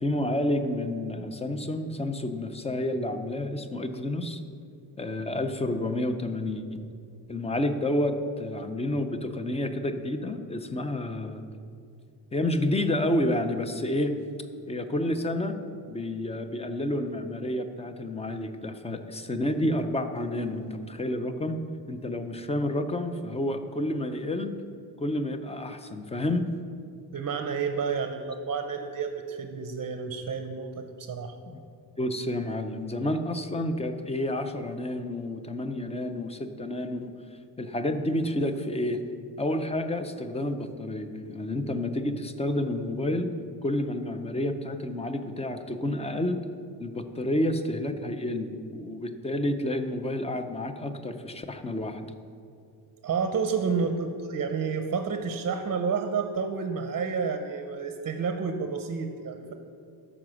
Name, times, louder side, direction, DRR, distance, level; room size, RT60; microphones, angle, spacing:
voice 1, 0.0-4.4 5.0-6.8 7.3-11.4 12.3-14.2 14.7-15.6 15.9-21.6 21.9-24.5 25.0-26.5 31.4-31.6 32.0-37.1 37.6-39.0 39.4-43.3 43.6-46.4 46.8-52.1, left 1 dB, 15° left, 8 dB, 0.4 m, -30 dB
voice 2, 27.1-31.4 53.0-59.5, right 5 dB, 40° right, 6 dB, 0.6 m, -30 dB
12.5 x 4.9 x 6.1 m, 2.4 s
wide cardioid pair, 170°, 40 cm